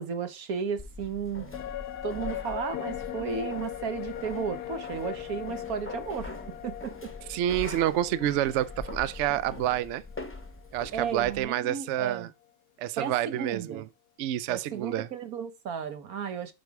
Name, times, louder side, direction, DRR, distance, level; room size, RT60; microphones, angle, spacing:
voice 1, 0.0-1.5 2.0-6.4 6.6-7.1 10.9-12.3 13.0-13.8 14.5-16.5, right 6 dB, 60° right, 1.5 m, -34 dB
sound 1, 0.8-11.4, left 2 dB, 10° left, 0.9 m, -43 dB
sound 2, 1.5-11.0 11.4-11.5, left 12 dB, 75° left, 1.2 m, -40 dB
voice 2, 7.3-10.0 10.7-12.3 12.8-13.9 14.2-15.1, right 12 dB, 75° right, 0.6 m, -28 dB
7.6 x 5.3 x 4.7 m
omnidirectional pair, 1.8 m